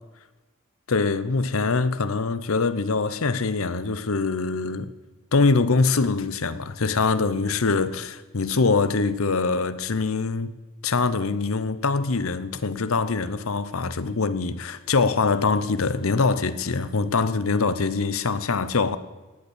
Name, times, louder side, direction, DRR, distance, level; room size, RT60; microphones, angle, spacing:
voice 1, 0.9-4.9 5.3-10.5 10.8-19.0, left 4 dB, 70° left, 0.8 m, -23 dB
17.5 x 8.2 x 8.2 m
head